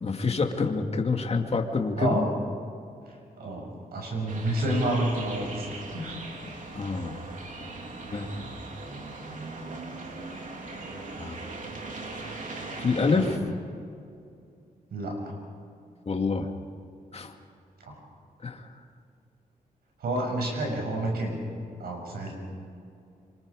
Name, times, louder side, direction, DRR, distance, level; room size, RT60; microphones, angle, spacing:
voice 1, 0.0-2.3 6.7-7.2 7.6-7.7 8.1-8.3 10.9-11.4 12.8-13.4 16.1-16.5 17.1-17.3 18.4-18.6, left 4 dB, 40° left, 4 dB, 2.3 m, -27 dB
voice 2, 2.0-2.3 3.4-6.2 8.0-8.3 13.1-13.3 14.9-15.3 17.8-18.0 20.0-21.4 21.8-22.3, right 1 dB, 85° right, 0 dB, 6.5 m, -30 dB
sound 1, 4.3-13.4, right 3 dB, 55° right, 3.2 m, -39 dB
27.5 x 25.0 x 5.0 m, 2.5 s
cardioid pair, 80°, 16 cm